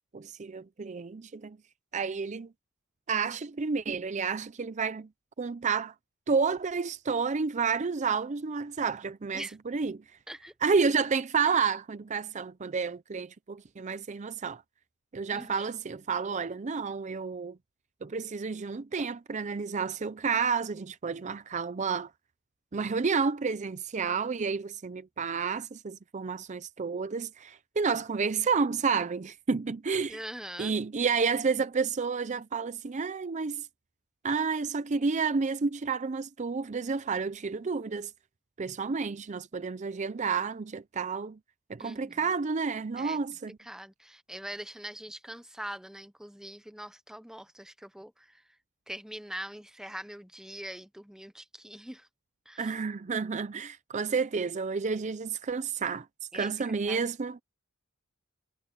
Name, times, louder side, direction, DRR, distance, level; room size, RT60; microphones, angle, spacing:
voice 1, 0.1-1.6 1.9-2.5 3.1-5.1 5.4-5.9 6.3-10.0 10.6-14.6 15.1-17.6 18.0-22.1 22.7-30.2 30.6-33.7 34.2-38.1 38.6-41.4 41.7-43.5 52.6-56.1 56.3-57.4, right 5 dB, 35° right, 0.5 m, -30 dB
voice 2, 15.3-15.7 30.1-30.7 41.8-42.3 43.0-43.2 43.6-48.4 48.9-52.1 52.5-52.7 56.3-57.0, right 1 dB, 5° right, 0.8 m, -43 dB
head